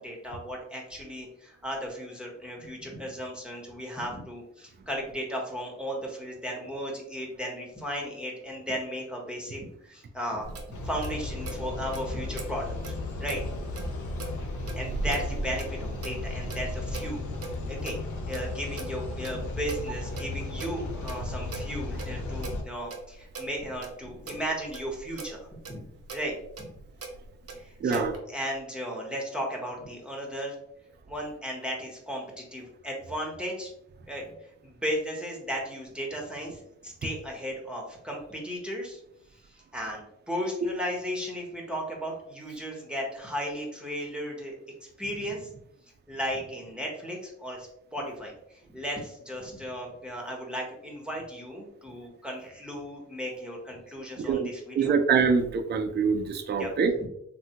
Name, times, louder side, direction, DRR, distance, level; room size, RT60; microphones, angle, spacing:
voice 1, 0.0-12.8 13.2-13.4 14.8-17.2 17.7-18.0 18.3-25.8 26.1-26.3 27.6-30.5 31.1-33.7 34.1-34.2 34.6-39.0 39.5-44.5 45.0-45.5 46.1-48.3 48.7-55.0 56.6-56.7 57.0-57.1, equal, 5° right, -1 dB, 0.8 m, -35 dB
Clock, 10.4-28.2, right 3 dB, 55° right, 0.8 m, -41 dB
sound 1, 10.7-22.6, left 2 dB, 85° left, 0.6 m, -35 dB
voice 2, 27.8-28.1 54.2-54.5 54.7-56.9, right 5 dB, 35° right, 6 dB, 0.4 m, -24 dB
3.3 x 2.2 x 2.8 m, 0.77 s
cardioid pair, 85°, 29 cm